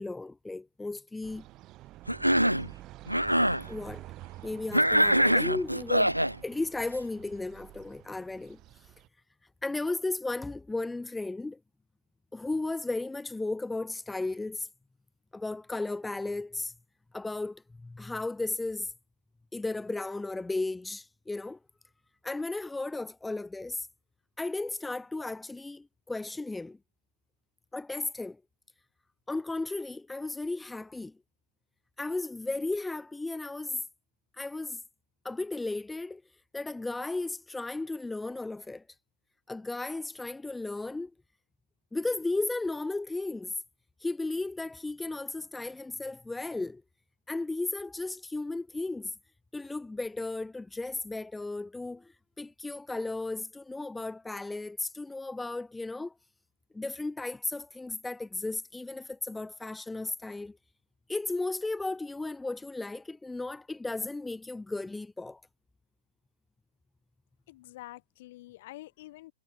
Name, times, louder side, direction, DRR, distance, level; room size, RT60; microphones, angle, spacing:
voice 1, 0.0-1.5 3.7-4.0 4.4-6.1 6.4-8.6 9.6-11.6 12.3-14.7 15.3-16.7 17.1-18.9 19.5-21.6 22.2-23.9 24.4-26.8 27.7-28.4 29.3-31.2 32.0-33.8 34.4-34.8 35.2-36.2 36.5-38.8 39.5-41.1 41.9-43.5 44.0-46.8 47.3-49.1 49.5-52.1 52.4-56.1 56.7-60.6 61.1-65.4, left 2 dB, 5° left, 0.4 m, -35 dB
sound 1, 1.2-9.1, right 16 dB, 30° right, 3.8 m, -48 dB
Cough, 2.1-2.7 3.1-3.6 4.7-6.3, equal, 90° right, 0.5 m, -24 dB
voice 2, 67.5-69.3, left 17 dB, 45° left, 3.5 m, -47 dB
figure-of-eight pair, 110°, 0 cm